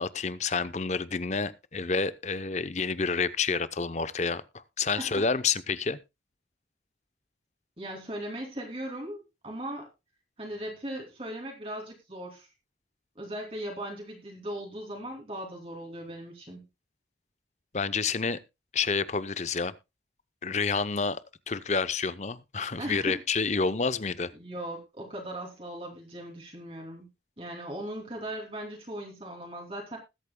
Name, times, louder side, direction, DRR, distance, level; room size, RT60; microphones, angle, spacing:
voice 1, 0.0-6.0 17.7-18.4 18.7-19.7 20.4-21.2 21.5-24.3, left 4 dB, 40° left, 15 dB, 0.7 m, -29 dB
voice 2, 7.8-9.9 10.4-12.5 13.1-16.7 22.8-23.2 24.3-27.1 27.4-30.0, right 1 dB, 30° right, 0 dB, 2.9 m, -38 dB
20.5 x 8.6 x 2.2 m, 0.24 s
head